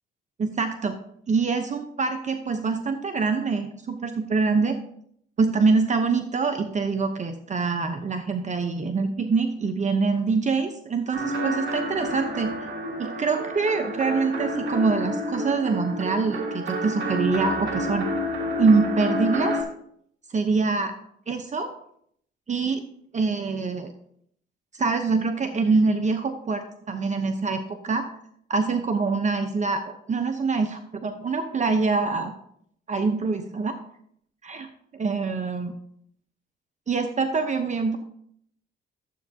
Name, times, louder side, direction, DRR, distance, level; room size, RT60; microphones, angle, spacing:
voice 1, 0.4-0.9 1.3-4.8 5.4-12.5 13.0-18.1 18.6-19.6 20.3-20.9 21.3-21.7 22.5-22.8 23.1-23.9 24.7-28.0 28.5-32.3 32.9-33.8 34.4-35.7 36.9-38.0, right 4 dB, 35° right, 6 dB, 0.8 m, -25 dB
sound 1, 11.1-19.6, equal, 70° right, 2.7 m, -29 dB
12.0 x 7.9 x 2.8 m, 0.67 s
cardioid pair, 90°, 20 cm